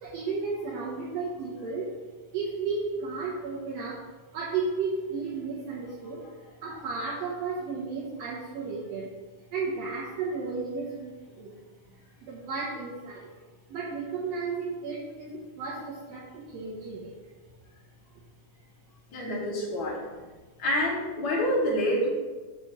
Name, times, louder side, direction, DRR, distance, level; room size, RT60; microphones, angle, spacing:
voice 1, 0.0-2.0 2.3-4.1 4.3-6.3 6.6-9.1 9.5-11.5 12.2-13.3 13.7-17.2, right 4 dB, 65° right, -5 dB, 1.8 m, -33 dB
voice 2, 19.1-20.1 20.6-22.1, equal, 45° left, -2 dB, 2.1 m, -27 dB
7.0 x 3.1 x 5.9 m, 1.3 s
omnidirectional pair, 3.6 m